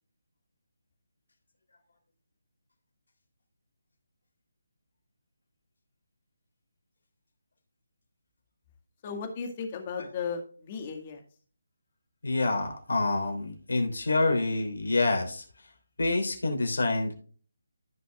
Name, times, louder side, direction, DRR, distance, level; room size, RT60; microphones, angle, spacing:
voice 1, 9.0-11.2, left 5 dB, 30° left, 5 dB, 1.9 m, -35 dB
voice 2, 12.2-15.4 16.0-17.1, left 2 dB, 70° left, 3 dB, 3.3 m, -27 dB
14.0 x 5.9 x 2.4 m, 0.41 s
figure-of-eight pair, 155°, 0 cm